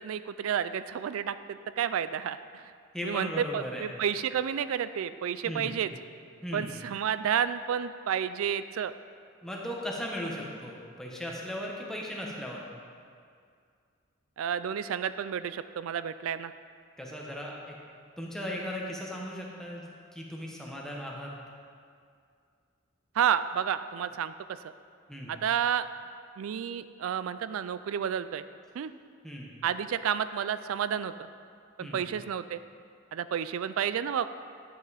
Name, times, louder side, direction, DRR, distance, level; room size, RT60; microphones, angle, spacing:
voice 1, 0.0-2.7 3.0-5.9 6.5-8.9 14.4-16.5 23.2-24.3 24.6-24.7 25.3-25.9 26.4-28.4 28.7-28.9 29.6-31.3 31.8-32.6 33.1-34.3, right 8 dB, 90° right, 13 dB, 0.3 m, -30 dB
voice 2, 2.9-3.9 5.4-5.8 6.4-6.7 9.4-12.6 17.0-17.7 18.2-21.3 25.1-25.4 29.2-29.5 31.8-32.1, equal, 5° left, -3 dB, 1.2 m, -37 dB
11.5 x 7.6 x 4.2 m, 2.2 s
head